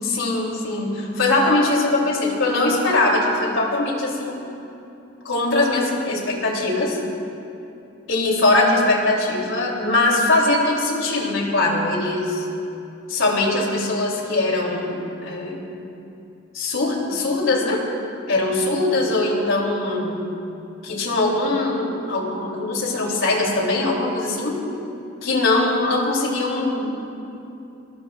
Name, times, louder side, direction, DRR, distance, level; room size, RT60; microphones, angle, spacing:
voice 1, 0.0-4.4 5.2-7.0 8.1-12.5 13.1-15.7 16.5-17.8 18.3-20.2 20.8-24.6 25.2-27.0, left 2 dB, 80° left, -1 dB, 3.2 m, -21 dB
26.5 x 20.0 x 2.5 m, 2.8 s
head